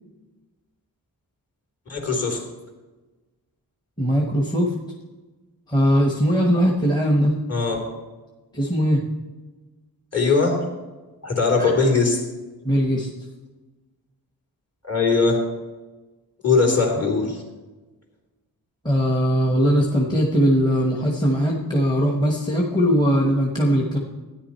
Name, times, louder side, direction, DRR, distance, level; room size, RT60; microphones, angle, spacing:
voice 1, 1.9-2.4 7.5-7.8 10.1-10.6 11.2-12.2 14.8-15.4 16.4-17.4, left 4 dB, 40° left, -1 dB, 3.1 m, -20 dB
voice 2, 4.0-4.7 5.7-7.3 8.5-9.0 11.6-11.7 12.6-13.1 18.8-24.0, equal, 10° left, -1 dB, 1.2 m, -20 dB
13.5 x 9.9 x 4.4 m, 1.2 s
wide cardioid pair, 140°, 37 cm